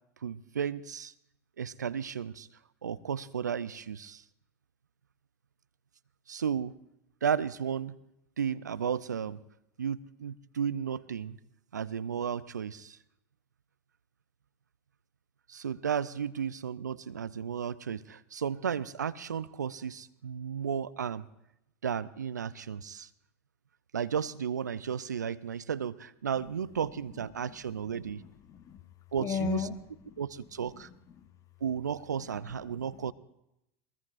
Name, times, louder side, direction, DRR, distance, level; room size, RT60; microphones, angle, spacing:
voice 1, 0.2-1.1 1.6-2.5 2.8-4.2 6.3-6.7 7.2-8.0 8.4-9.4 9.8-11.4 11.7-13.0 15.5-21.3 21.8-23.1 23.9-28.2 29.1-29.7 30.2-30.9 31.6-33.1, right 7 dB, 90° right, 19 dB, 0.4 m, -34 dB
voice 2, 27.9-28.8 29.2-29.8 30.1-30.2 30.6-31.3 32.6-33.1, left 6 dB, 35° left, 10 dB, 1.2 m, -37 dB
22.5 x 21.0 x 2.5 m, 0.85 s
hypercardioid pair, 90°, 9 cm